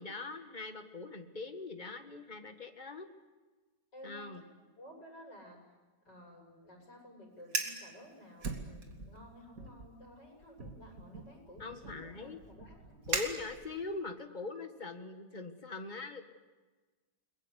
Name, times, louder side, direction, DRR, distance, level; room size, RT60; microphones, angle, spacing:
voice 1, 0.0-3.1 4.0-4.4 11.6-12.4 13.1-16.2, left 3 dB, 25° left, 6 dB, 1.9 m, -42 dB
voice 2, 3.9-4.4 4.8-5.6 6.1-12.9, left 1 dB, 85° left, 1 dB, 7.7 m, -53 dB
Fire, 7.4-7.8 8.4-9.2 9.6-9.9 10.6-13.9, right 3 dB, 50° right, 2.8 m, -39 dB
30.0 x 21.5 x 8.3 m, 1.3 s
omnidirectional pair, 1.8 m